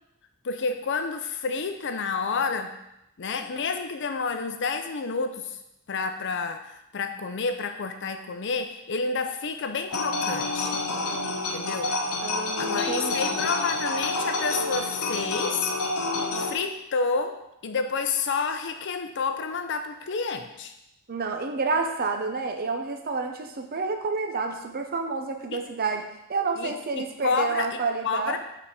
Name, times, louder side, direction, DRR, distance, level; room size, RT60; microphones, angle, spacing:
voice 1, 0.4-2.7 3.2-5.6 5.9-6.7 6.9-10.8 11.5-11.9 12.6-15.7 16.3-20.7 25.5-25.6 26.6-27.7 28.0-28.4, left 4 dB, 55° left, 7 dB, 0.6 m, -29 dB
sound 1, 9.9-16.5, left 3 dB, 70° left, 0.8 m, -28 dB
voice 2, 12.2-13.5 21.1-28.4, right 4 dB, 40° right, 4 dB, 0.6 m, -29 dB
5.5 x 4.0 x 4.8 m, 0.85 s
head